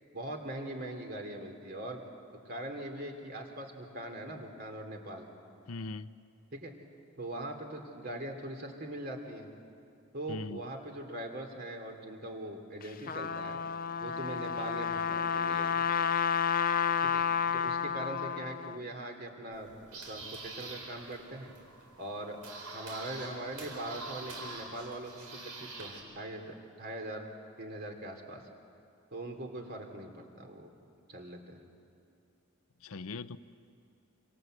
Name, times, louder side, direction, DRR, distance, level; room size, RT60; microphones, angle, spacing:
voice 1, 0.1-2.0 2.3-5.3 6.5-6.7 7.2-9.5 10.1-13.6 14.0-15.9 17.0-17.2 17.5-21.5 22.0-22.4 22.7-27.3 27.6-28.4 29.1-30.7 31.1-31.6, right 1 dB, 45° right, 4 dB, 3.1 m, -41 dB
voice 2, 5.7-6.1 10.3-10.6 32.8-33.4, left 3 dB, 70° left, 13 dB, 0.7 m, -40 dB
Trumpet, 12.8-18.8, left 7 dB, 40° left, 0.6 m, -31 dB
sound 1, 19.5-26.0, right 3 dB, 85° right, 4.8 m, -45 dB
27.0 x 26.0 x 8.0 m, 2.5 s
head